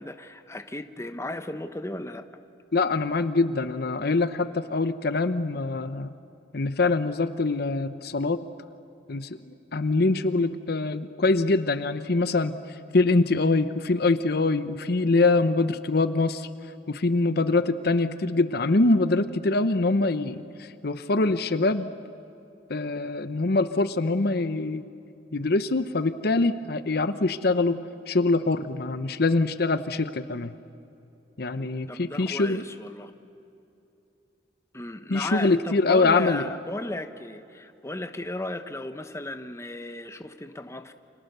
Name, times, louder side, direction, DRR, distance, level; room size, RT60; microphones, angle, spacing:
voice 1, 0.0-2.2 31.6-33.1 34.7-40.9, left 1 dB, 15° left, 8 dB, 1.0 m, -35 dB
voice 2, 2.7-6.1 6.5-8.4 9.1-12.6 12.9-16.5 16.9-21.9 22.7-24.8 25.3-30.5 31.4-32.6 35.1-36.5, left 3 dB, 60° left, 12 dB, 0.8 m, -24 dB
29.5 x 26.0 x 6.8 m, 2.8 s
head